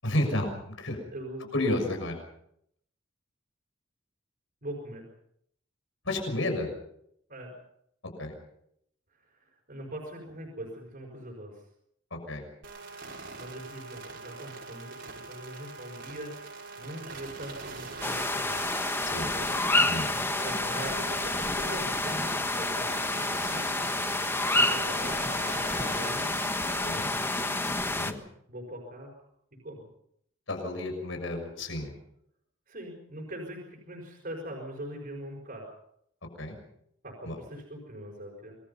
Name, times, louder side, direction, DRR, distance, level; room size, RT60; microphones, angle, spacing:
voice 1, 0.0-1.0 1.5-2.1 6.1-6.7 8.2-8.3 12.3-12.4 19.0-19.3 19.9-20.1 23.4-23.6 26.8-27.1 28.0-28.2 30.5-31.9 36.4-36.6 37.2-37.4, left 1 dB, 70° left, 4 dB, 6.6 m, -31 dB
voice 2, 1.1-1.9 4.6-5.0 7.3-7.5 9.3-11.6 13.3-18.6 19.1-19.5 20.0-23.4 24.5-26.3 26.9-27.5 28.5-29.1 29.6-29.9 32.7-35.7 37.0-38.6, right 1 dB, 45° right, 0 dB, 5.4 m, -42 dB
sound 1, 12.6-26.9, right 4 dB, 60° right, 5.7 m, -43 dB
sound 2, 18.0-28.1, left 2 dB, 10° left, 1.4 m, -29 dB
27.0 x 21.5 x 5.6 m, 0.74 s
head